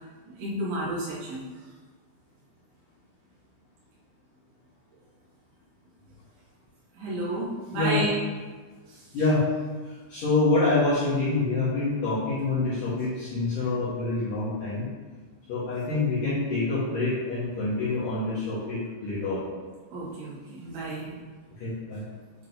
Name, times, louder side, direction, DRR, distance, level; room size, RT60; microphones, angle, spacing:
voice 1, 0.3-1.5 6.9-8.2 8.9-9.1 19.9-21.2, right 2 dB, 85° right, -9 dB, 4.4 m, -31 dB
voice 2, 7.7-8.0 9.1-9.5 9.8-14.9 15.5-19.5 21.6-22.0, left 3 dB, 70° left, -11 dB, 2.0 m, -26 dB
9.6 x 3.7 x 2.6 m, 1.4 s
omnidirectional pair, 5.5 m